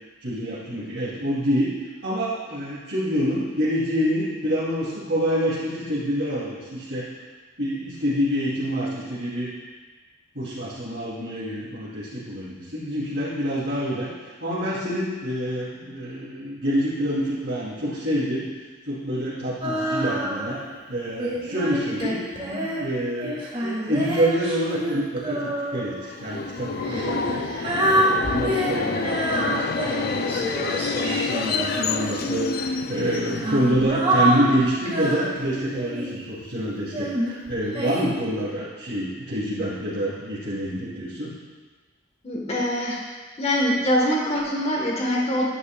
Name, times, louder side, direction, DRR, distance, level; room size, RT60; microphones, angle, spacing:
voice 1, 0.2-1.7 2.0-7.0 7.6-9.5 10.3-14.1 14.4-18.5 18.9-20.6 20.9-22.2 22.6-27.5 27.9-41.3, equal, 60° right, -13 dB, 2.9 m, -27 dB
Female singing, 19.6-20.7 21.2-26.0 26.8-32.3 33.1-36.2 36.9-38.0, right 1 dB, 30° right, 1.9 m, -27 dB
Subway metro underground, 26.1-33.8, left 4 dB, 50° left, 0.4 m, -28 dB
voice 2, 42.2-43.0 43.4-45.4, equal, 30° left, -2 dB, 1.3 m, -24 dB
11.0 x 10.5 x 2.3 m, 1.4 s
head